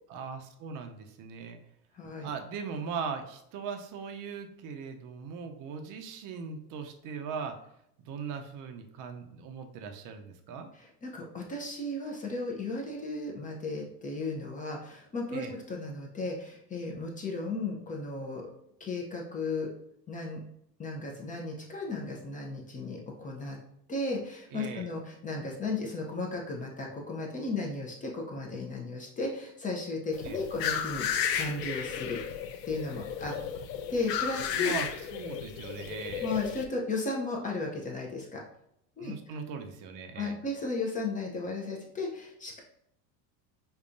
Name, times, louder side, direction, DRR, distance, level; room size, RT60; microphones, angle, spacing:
voice 1, 0.1-1.6 2.2-7.6 8.0-10.7 15.3-15.5 24.5-24.9 30.2-30.4 34.5-36.4 39.0-40.4, right 6 dB, 40° right, 5 dB, 0.6 m, -39 dB
voice 2, 1.9-2.3 10.7-18.5 18.8-19.7 20.1-20.4 20.8-23.6 23.9-32.2 32.6-33.3 33.9-34.7 36.2-38.4 39.0-39.3 40.2-42.6, left 3 dB, 15° left, -1 dB, 0.5 m, -35 dB
sound 1, 30.1-36.7, left 8 dB, 90° left, 0.6 m, -34 dB
5.4 x 2.3 x 2.5 m, 0.75 s
supercardioid pair, 115°, 48 cm